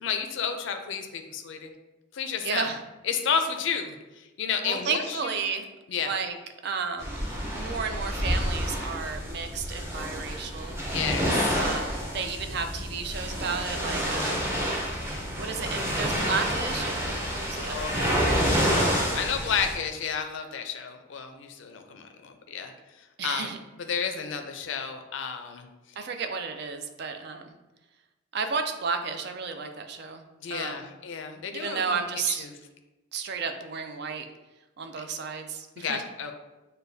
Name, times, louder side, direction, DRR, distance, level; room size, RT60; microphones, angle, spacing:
voice 1, 0.0-1.7 2.1-2.7 3.0-5.3 5.9-6.1 10.9-11.5 17.5-23.5 23.8-25.7 30.4-32.0 32.3-32.5 35.0-35.1 35.8-36.3, left 6 dB, 65° left, 6 dB, 0.4 m, -32 dB
voice 2, 2.4-2.8 4.6-5.7 6.0-6.4 6.6-7.2 7.5-10.8 11.5-14.5 15.4-18.2 23.2-23.6 26.0-27.5 28.3-30.2 30.5-30.9 31.5-32.5 33.1-34.3 34.8-36.0, right 5 dB, 50° right, 6 dB, 0.4 m, -32 dB
sound 1, 7.0-19.7, equal, 10° right, 0.6 m, -28 dB
6.5 x 2.2 x 2.6 m, 1.1 s
head